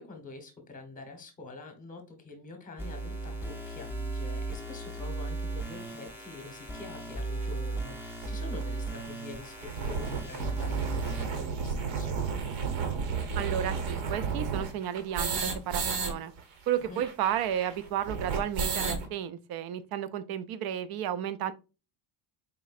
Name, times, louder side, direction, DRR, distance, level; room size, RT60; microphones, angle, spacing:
voice 1, 0.0-12.4 16.9-17.0, left 3 dB, 20° left, 0.9 m, -46 dB
sound 1, 2.8-11.3, right 2 dB, 5° right, 0.5 m, -36 dB
sound 2, 7.4-7.5 8.2-8.3 8.6-8.7 9.0-9.1 9.4-16.1 16.4-16.5 16.7-19.1, right 5 dB, 70° right, 1.1 m, -32 dB
voice 2, 13.4-16.3 16.7-21.5, right 10 dB, 55° right, 0.5 m, -32 dB
4.3 x 3.7 x 2.4 m
cardioid pair, 160°, 46 cm